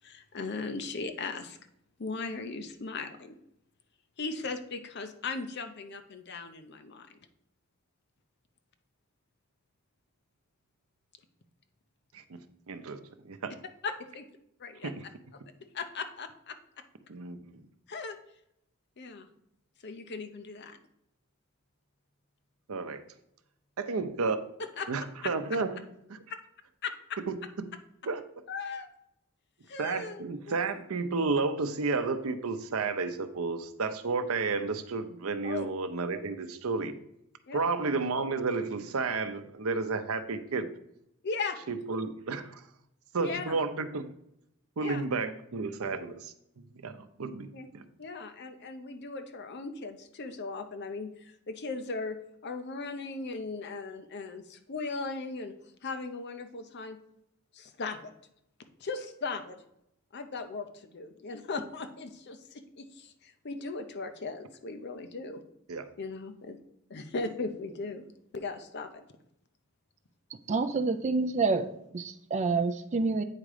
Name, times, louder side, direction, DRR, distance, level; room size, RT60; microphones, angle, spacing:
voice 1, 0.0-1.6 2.0-3.3 4.2-7.1 13.8-14.3 14.6-14.9 15.7-16.6 17.9-18.2 19.0-19.3 19.8-20.8 24.8-24.9 25.2-25.3 26.8-26.9 28.5-28.9 29.7-30.7 35.4-35.7 37.5-37.6 41.2-41.6 43.2-43.6 44.8-45.0 47.5-47.7 48.0-52.2 52.4-55.5 55.8-57.0 57.5-58.1 58.8-59.6 60.1-65.4 66.0-66.6 66.9-68.1 68.3-68.9, left 4 dB, 55° left, 8 dB, 0.7 m, -38 dB
voice 2, 12.7-13.0 13.2-13.6 14.8-15.0 17.1-17.6 22.7-23.0 23.8-24.4 24.9-26.2 27.3-27.7 28.1-28.2 29.8-37.0 37.5-40.7 41.7-42.6 43.1-44.1 44.8-47.8 65.7-65.9, right 4 dB, 90° right, 10 dB, 0.6 m, -32 dB
voice 3, 70.5-73.2, right 4 dB, 35° right, 8 dB, 0.4 m, -28 dB
8.5 x 3.7 x 4.9 m, 0.79 s
head